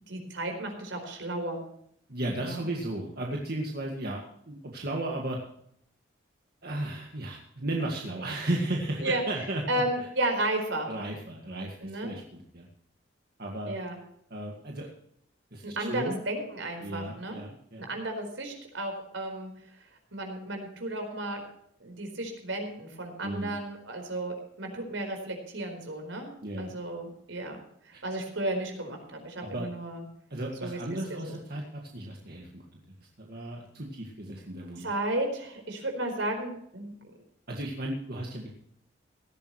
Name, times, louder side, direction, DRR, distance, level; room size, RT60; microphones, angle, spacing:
voice 1, 0.1-1.6 2.4-2.6 9.0-9.2 9.7-10.9 11.8-12.1 13.7-14.0 15.6-17.4 17.8-19.5 20.1-21.4 21.8-27.6 28.0-30.0 30.6-30.8 31.1-31.3 34.8-36.9, right 1 dB, 80° right, 4 dB, 4.5 m, -33 dB
voice 2, 2.1-5.4 6.6-9.6 10.9-12.7 13.4-13.7 14.3-14.9 15.5-16.2 16.8-17.9 23.2-23.6 26.4-26.7 29.4-29.7 30.3-32.6 33.2-34.9 37.5-38.5, right 1 dB, 55° right, -1 dB, 1.9 m, -35 dB
17.5 x 14.0 x 3.2 m, 0.70 s
head